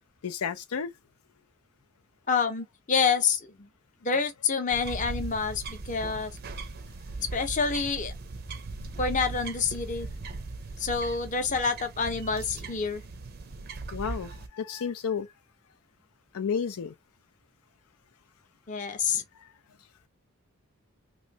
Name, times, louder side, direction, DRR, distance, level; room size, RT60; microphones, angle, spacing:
voice 1, 0.2-0.9 13.9-15.3 16.3-16.9 19.4-19.5, left 6 dB, 85° left, 0.5 m, -32 dB
voice 2, 2.3-3.7 4.0-6.3 7.2-8.1 9.0-10.1 10.8-13.0 18.7-19.2, left 5 dB, 35° left, 0.7 m, -28 dB
sound 1, 4.7-14.5, right 3 dB, 45° right, 0.5 m, -39 dB
3.1 x 2.6 x 2.7 m
head